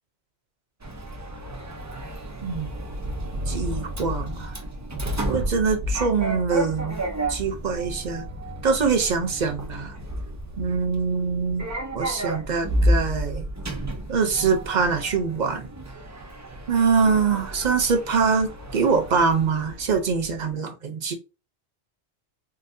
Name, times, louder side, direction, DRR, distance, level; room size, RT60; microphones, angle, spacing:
Sliding door, 0.8-20.4, equal, 25° right, 0.3 m, -31 dB
voice 1, 3.5-4.5 5.3-7.0 7.3-8.2 8.6-9.9 10.6-11.7 11.9-13.5 14.1-15.7 16.7-21.1, right 5 dB, 45° right, 0.7 m, -24 dB
3.8 x 2.3 x 2.6 m
omnidirectional pair, 1.2 m